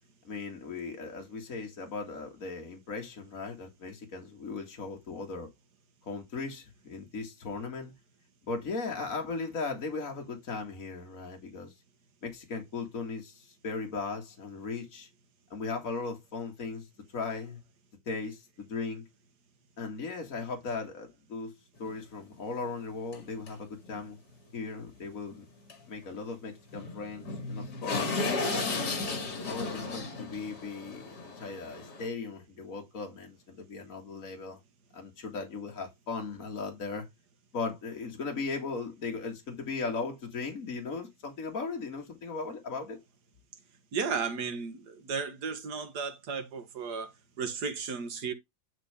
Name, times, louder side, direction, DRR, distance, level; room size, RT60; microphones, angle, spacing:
voice 1, 0.2-5.5 6.1-7.9 8.5-11.7 12.2-15.1 15.5-16.9 17.1-17.6 18.1-19.1 19.8-21.5 21.8-24.2 24.5-25.5 25.9-28.9 29.5-34.6 34.9-37.1 37.5-43.0, left 4 dB, 50° left, 2.4 m, -37 dB
sound 1, 21.8-21.9 22.3-22.4 23.1-23.2 23.5-23.6 23.8-24.0 25.7-25.8 26.1-26.2 26.7-32.1, left 3 dB, 65° left, 2.5 m, -34 dB
voice 2, 43.9-48.3, right 5 dB, 65° right, 1.7 m, -34 dB
10.5 x 4.3 x 3.5 m
omnidirectional pair, 1.9 m